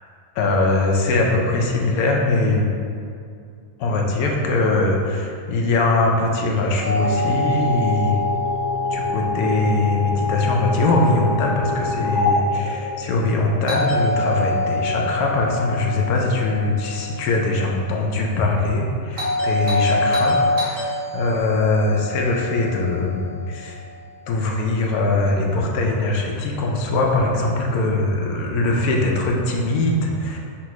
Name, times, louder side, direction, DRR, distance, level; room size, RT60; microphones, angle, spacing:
voice 1, 0.4-2.7 3.8-8.2 8.9-23.8 24.3-30.4, left 2 dB, 75° left, 0 dB, 1.0 m, -21 dB
Doorbell, 6.8-10.8 13.7-17.9 19.1-23.6, left 1 dB, 85° right, 1.8 m, -26 dB
sound 1, 7.0-13.5, left 2 dB, ahead, 0.4 m, -25 dB
5.7 x 2.5 x 3.0 m, 2.4 s
omnidirectional pair, 1.6 m